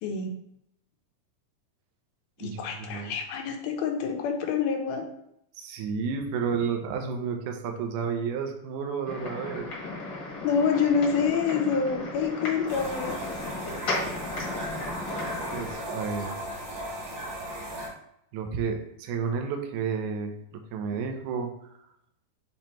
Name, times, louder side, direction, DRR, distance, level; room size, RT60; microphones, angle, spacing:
voice 1, 0.0-0.4 2.4-5.0 10.4-13.1, left 6 dB, 80° left, 3 dB, 2.8 m, -27 dB
voice 2, 2.4-3.2 5.6-9.7 15.5-16.3 18.3-21.5, right 6 dB, 75° right, 3 dB, 1.9 m, -31 dB
sound 1, 9.0-15.7, left 3 dB, 45° left, 1.6 m, -35 dB
sound 2, 12.7-17.9, right 1 dB, 45° right, 1.3 m, -36 dB
7.1 x 3.0 x 4.4 m, 0.76 s
omnidirectional pair, 4.3 m